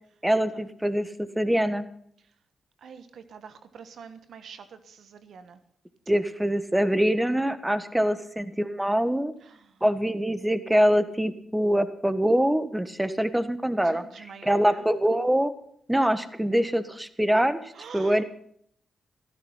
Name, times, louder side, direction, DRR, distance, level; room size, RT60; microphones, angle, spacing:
voice 1, 0.2-1.9 6.1-9.3 9.8-15.5 15.9-18.2, equal, 10° right, 12 dB, 1.5 m, -24 dB
voice 2, 2.8-5.6 9.4-9.8 13.8-14.9 17.7-18.2, right 6 dB, 70° right, 11 dB, 1.3 m, -46 dB
15.0 x 13.0 x 5.6 m, 0.65 s
supercardioid pair, 50°, 0 cm